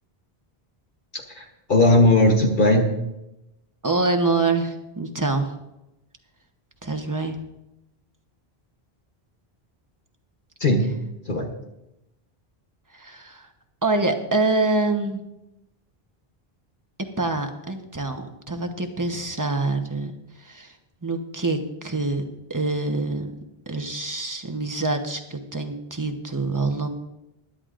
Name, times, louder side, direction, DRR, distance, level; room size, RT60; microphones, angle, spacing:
voice 1, 1.3-2.9 10.6-10.9 11.3-11.5, left 1 dB, 55° left, 1 dB, 1.3 m, -18 dB
voice 2, 3.8-5.5 6.8-7.4 12.9-13.5 13.8-15.2 17.2-20.1 20.4-20.8 21.0-23.3 23.7-26.9, right 3 dB, 20° right, 5 dB, 1.1 m, -25 dB
21.5 x 11.0 x 2.6 m, 0.91 s
omnidirectional pair, 1.0 m